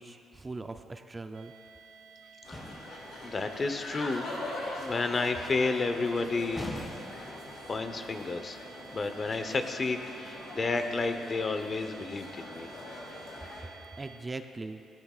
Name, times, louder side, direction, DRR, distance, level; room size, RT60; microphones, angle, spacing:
voice 1, 0.0-1.5 14.0-14.8, right 3 dB, 25° right, 7 dB, 0.6 m, -40 dB
sound 1, 1.3-14.2, right 6 dB, 80° right, 3.7 m, -52 dB
sound 2, 2.4-13.7, left 2 dB, 75° left, 3.6 m, -42 dB
sound 3, 2.5-3.1 6.5-7.4, left 1 dB, 10° left, 1.6 m, -40 dB
voice 2, 3.2-4.2 4.8-6.6 7.7-8.6 8.9-12.7, left 3 dB, 35° left, 7 dB, 1.0 m, -31 dB
18.0 x 16.5 x 2.5 m, 2.5 s
cardioid pair, 90°, 0 cm